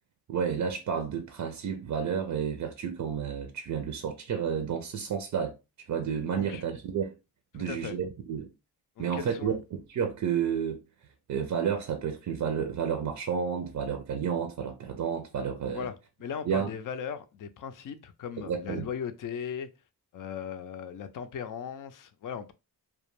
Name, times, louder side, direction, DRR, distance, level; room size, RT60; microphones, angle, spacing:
voice 1, 0.3-5.5 5.9-7.1 7.5-8.5 9.0-10.8 11.3-15.9 16.5-16.7 18.4-18.9, right 7 dB, 45° right, 0.5 m, -31 dB
voice 2, 6.3-6.6 7.5-8.0 9.0-9.6 15.7-19.7 20.1-22.5, left 7 dB, 50° left, 0.4 m, -38 dB
2.2 x 2.1 x 3.0 m
cardioid pair, 75°, 41 cm